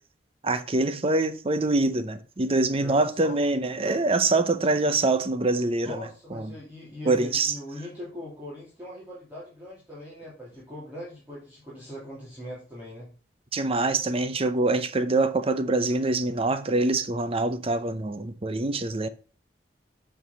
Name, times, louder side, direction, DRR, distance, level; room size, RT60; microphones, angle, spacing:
voice 1, 0.4-6.5 7.1-7.6 13.5-19.1, right 2 dB, 35° right, 0.7 m, -25 dB
voice 2, 2.8-3.4 5.8-13.1, left 1 dB, 10° right, 3.1 m, -41 dB
8.3 x 4.8 x 6.2 m
head